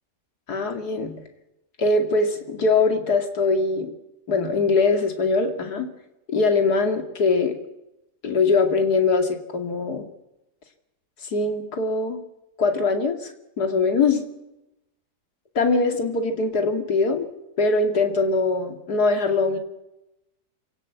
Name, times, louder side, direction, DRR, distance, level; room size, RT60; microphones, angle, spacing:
voice 1, 0.5-1.2 1.8-3.9 4.3-5.9 6.3-7.6 8.2-10.1 11.2-12.2 12.6-14.3 15.5-17.3 17.6-19.6, left 3 dB, 70° left, 6 dB, 2.9 m, -22 dB
25.5 x 17.5 x 8.2 m, 0.92 s
omnidirectional pair, 1.7 m